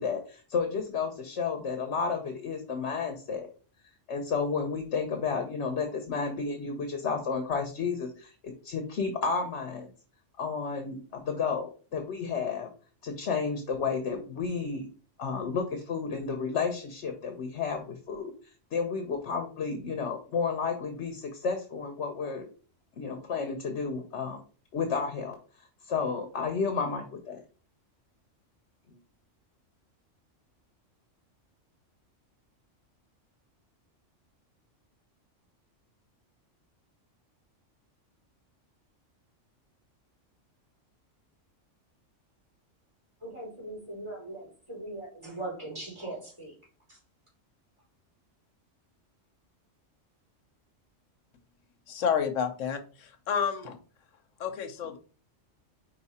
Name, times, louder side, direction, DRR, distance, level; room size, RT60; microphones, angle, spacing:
voice 1, 0.0-3.5 4.1-9.9 10.4-12.7 13.0-14.9 15.2-18.3 18.7-22.5 23.0-24.4 24.7-25.3 25.8-27.4, left 5 dB, 65° left, 5 dB, 1.1 m, -32 dB
voice 2, 43.2-46.5 46.9-47.0, right 2 dB, 25° right, -4 dB, 3.2 m, -40 dB
voice 3, 51.9-53.8 54.4-55.0, left 7 dB, 90° left, 8 dB, 1.2 m, -30 dB
4.8 x 4.7 x 4.2 m, 0.38 s
omnidirectional pair, 1.3 m